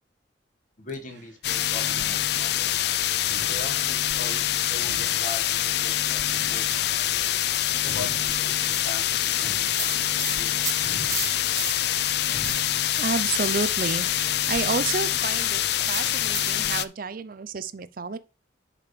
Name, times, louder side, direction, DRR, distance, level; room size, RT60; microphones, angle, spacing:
voice 1, 0.8-2.7 3.5-7.2 7.8-10.8, left 3 dB, 45° left, 1.6 m, -41 dB
sound 1, 0.9-1.4 1.7-2.8 3.2-4.4 4.7-5.8 6.2-7.3 7.8-8.9 9.3-10.3 10.8-11.8 12.2-12.8, right 2 dB, 70° right, 1.2 m, -44 dB
sound 2, 1.4-16.8, left 12 dB, 60° left, 0.4 m, -25 dB
sound 3, 8.5-12.1 12.4-16.7, right 5 dB, 15° right, 1.0 m, -37 dB
voice 2, 13.0-15.6 15.9-18.2, right 5 dB, 50° right, 0.5 m, -30 dB
10.5 x 5.1 x 3.2 m
head